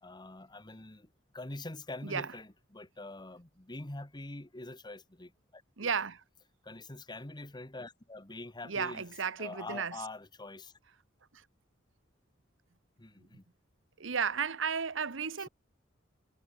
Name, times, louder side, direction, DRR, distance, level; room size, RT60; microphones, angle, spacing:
voice 1, 0.0-1.1 1.3-5.9 6.6-9.0 9.4-10.7 13.0-13.4, left 2 dB, 20° left, 1.6 m, -44 dB
voice 2, 2.0-2.3 5.8-6.2 8.6-10.0 11.3-11.4 14.0-15.5, right 6 dB, 70° right, 1.1 m, -34 dB
head